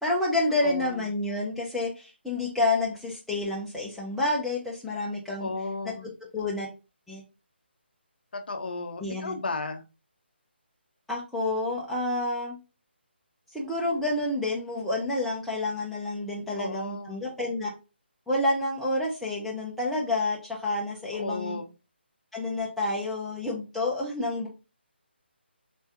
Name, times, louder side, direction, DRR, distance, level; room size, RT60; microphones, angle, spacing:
voice 1, 0.0-5.5 6.3-6.7 7.1-7.2 9.0-9.4 11.1-12.6 13.5-17.7 18.3-21.6 22.3-24.5, left 2 dB, ahead, 0.7 m, -29 dB
voice 2, 0.6-1.1 5.4-6.1 8.3-9.8 16.6-17.2 21.1-21.7, left 3 dB, 55° left, 0.6 m, -34 dB
3.3 x 3.3 x 2.7 m
figure-of-eight pair, 150°, 6 cm